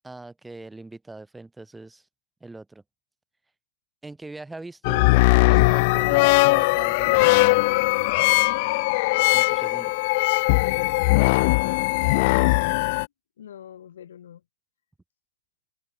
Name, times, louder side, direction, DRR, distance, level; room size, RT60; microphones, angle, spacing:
voice 1, 0.0-2.1 2.4-2.8 4.0-5.1 5.4-7.5 9.3-9.9 12.0-12.3 12.6-12.9, right 2 dB, 5° right, 6.0 m, -41 dB
sound 1, 4.8-13.1, left 24 dB, 45° left, 0.6 m, -20 dB
voice 2, 10.6-12.6 13.4-14.4, left 10 dB, 65° left, 4.4 m, -43 dB
hypercardioid pair, 130°, 0 cm